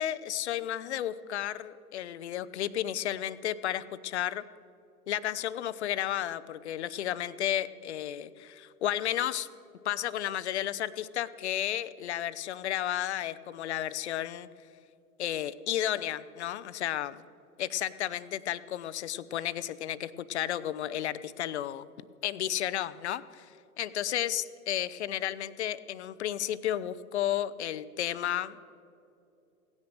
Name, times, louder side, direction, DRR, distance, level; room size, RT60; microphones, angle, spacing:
voice 1, 0.0-4.4 5.1-9.5 9.8-14.5 15.2-17.2 17.6-21.9 22.2-23.5 23.8-28.6, left 11 dB, 50° left, 16 dB, 0.6 m, -32 dB
17.0 x 9.7 x 6.5 m, 2.6 s
figure-of-eight pair, 105°, 45 cm